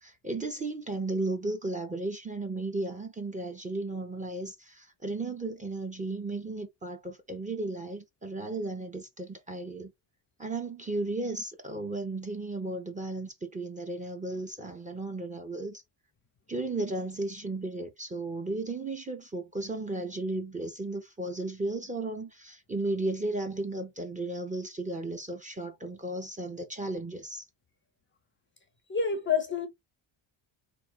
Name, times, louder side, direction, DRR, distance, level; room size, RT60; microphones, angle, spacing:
voice 1, 0.0-9.9 10.4-15.8 16.5-27.4, right 2 dB, 15° right, 0.6 m, -34 dB
voice 2, 28.9-29.7, left 6 dB, 25° left, 0.5 m, -27 dB
4.2 x 3.1 x 2.2 m
cardioid pair, 145°, 46 cm